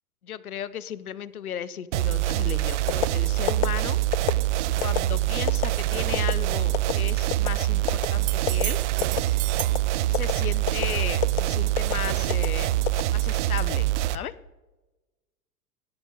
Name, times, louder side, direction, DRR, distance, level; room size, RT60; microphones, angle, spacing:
voice 1, 0.2-4.0 4.8-8.8 9.5-9.6 10.1-12.7 13.1-14.3, left 9 dB, 75° left, 18 dB, 0.9 m, -35 dB
sound 1, 1.9-14.2, right 15 dB, 55° right, 0.7 m, -25 dB
sound 2, 2.9-3.1 3.5-3.7 4.1-4.4 4.8-5.0 5.5-5.7 6.1-6.3 6.7-6.9 7.3-7.5 7.9-8.1 8.5-8.6 9.0-9.3 9.6-9.8 10.1-10.3 10.7-10.9 11.2-11.4 11.8-11.9 12.3-12.5 12.9-13.5 13.9-14.2, left 17 dB, 50° left, 0.6 m, -26 dB
sound 3, 8.2-9.9 13.5-13.6, right 16 dB, 20° right, 0.5 m, -34 dB
17.0 x 11.5 x 5.2 m, 1.1 s
figure-of-eight pair, 90°, 44 cm